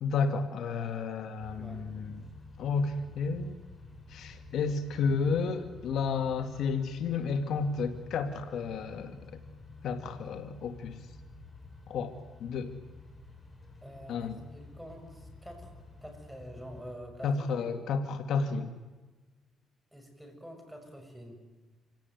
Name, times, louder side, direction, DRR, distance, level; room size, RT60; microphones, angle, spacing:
voice 1, 0.0-2.2 2.6-3.6 4.1-9.4 9.8-11.0 11.9-12.1 12.4-12.7 14.1-14.4 17.2-18.7, left 5 dB, 70° left, 7 dB, 2.1 m, -31 dB
sound 1, 1.4-17.0, left 3 dB, 15° left, 6.3 m, -50 dB
voice 2, 13.8-15.7 16.0-17.3 17.6-17.7 19.9-21.4, equal, 5° right, 4 dB, 6.8 m, -47 dB
27.0 x 17.5 x 9.5 m, 1.3 s
cardioid pair, 110°, 0 cm